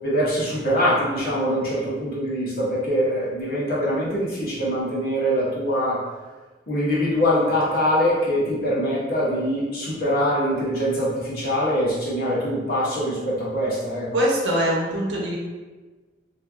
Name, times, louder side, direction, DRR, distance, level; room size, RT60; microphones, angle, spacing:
voice 1, 0.0-6.0 6.7-14.1, equal, 55° left, -7 dB, 1.1 m, -23 dB
voice 2, 14.1-15.4, right 1 dB, 90° right, -3 dB, 0.9 m, -22 dB
3.2 x 2.6 x 3.5 m, 1.3 s
head